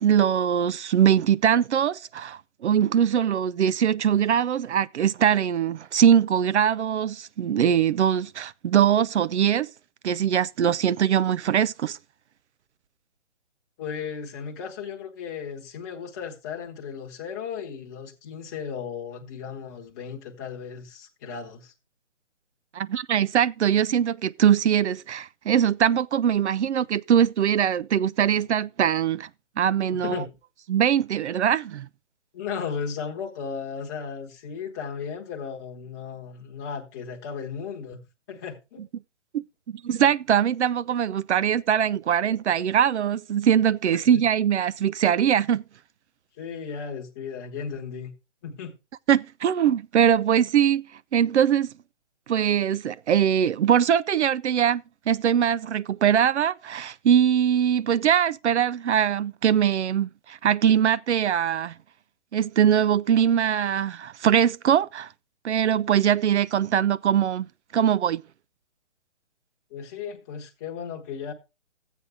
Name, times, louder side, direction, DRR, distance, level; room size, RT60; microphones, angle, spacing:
voice 1, 0.0-9.7 10.0-12.0 22.7-29.3 29.6-30.2 30.7-31.9 39.3-45.6 49.1-51.7 52.3-61.7 62.3-65.1 65.4-67.5 67.7-68.2, right 9 dB, 70° right, 0.5 m, -22 dB
voice 2, 13.8-21.7 30.0-30.4 32.3-38.0 38.3-38.8 44.1-44.2 46.4-48.1 48.4-48.7 69.7-71.3, left 6 dB, 15° left, 1.0 m, -35 dB
12.5 x 8.2 x 3.5 m
hypercardioid pair, 165°, 36 cm